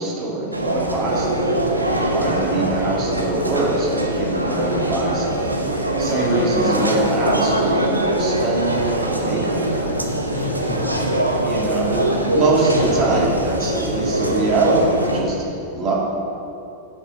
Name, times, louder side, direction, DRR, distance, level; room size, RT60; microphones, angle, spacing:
voice 1, 0.0-1.6 2.1-5.6 6.0-9.8 11.4-15.4 15.7-15.9, right 2 dB, 35° right, -4 dB, 2.3 m, -23 dB
sound 1, 0.5-15.2, right 1 dB, 85° right, 0.8 m, -22 dB
voice 2, 2.5-2.9 6.3-6.9 9.8-11.2 12.7-13.1, left 5 dB, 45° left, 4 dB, 0.8 m, -32 dB
8.5 x 6.9 x 5.4 m, 2.8 s
figure-of-eight pair, 90°, 0 cm